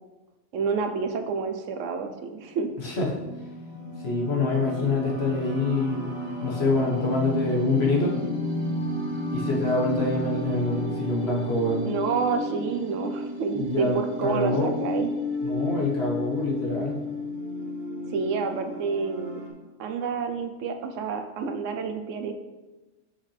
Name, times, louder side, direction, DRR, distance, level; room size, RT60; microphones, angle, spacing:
voice 1, 0.5-2.7 11.8-15.1 18.1-19.4 19.8-22.3, right 5 dB, 80° right, 6 dB, 1.0 m, -29 dB
sound 1, 2.5-19.5, left 1 dB, 45° right, 1.1 m, -33 dB
voice 2, 4.0-6.1 6.4-8.1 9.3-11.9 13.5-14.0 14.2-14.7 15.4-17.0, left 2 dB, 55° left, -3 dB, 1.5 m, -25 dB
6.3 x 5.4 x 3.3 m, 1.1 s
omnidirectional pair, 1.3 m